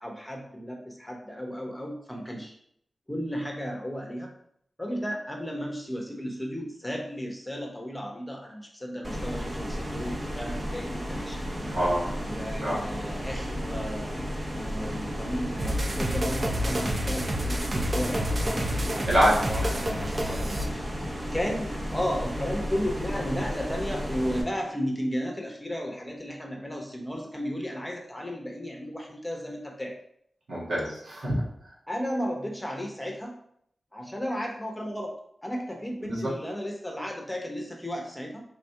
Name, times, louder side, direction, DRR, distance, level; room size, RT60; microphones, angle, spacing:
voice 1, 0.0-2.6 3.1-4.3 4.8-11.4 12.2-14.1 14.5-19.1 19.3-20.9 21.3-30.0 31.9-33.4 33.9-35.1 35.4-38.4, equal, 15° left, 0 dB, 1.0 m, -34 dB
sound 1, 9.0-24.4, equal, 30° right, 1.0 m, -33 dB
voice 2, 11.6-12.0 12.6-12.8 19.0-19.4 19.7-19.8 30.5-31.4 36.0-36.3, equal, 80° right, -6 dB, 1.6 m, -25 dB
sound 2, 15.6-20.7, equal, 45° right, 0.6 m, -29 dB
3.6 x 2.6 x 4.4 m, 0.68 s
cardioid pair, 50°, 0 cm